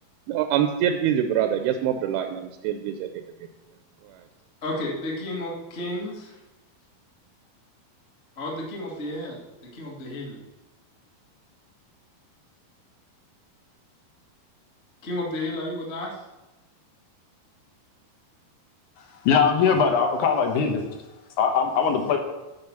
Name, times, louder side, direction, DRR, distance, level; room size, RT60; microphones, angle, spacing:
voice 1, 0.3-3.2 4.1-4.2, right 9 dB, 85° right, 6 dB, 2.6 m, -25 dB
voice 2, 4.6-6.4 8.3-10.4 15.0-16.2, left 1 dB, 30° left, -3 dB, 1.2 m, -32 dB
voice 3, 19.3-20.8 21.4-22.2, left 6 dB, 65° left, 4 dB, 2.2 m, -21 dB
10.5 x 5.3 x 7.2 m, 1.0 s
omnidirectional pair, 4.4 m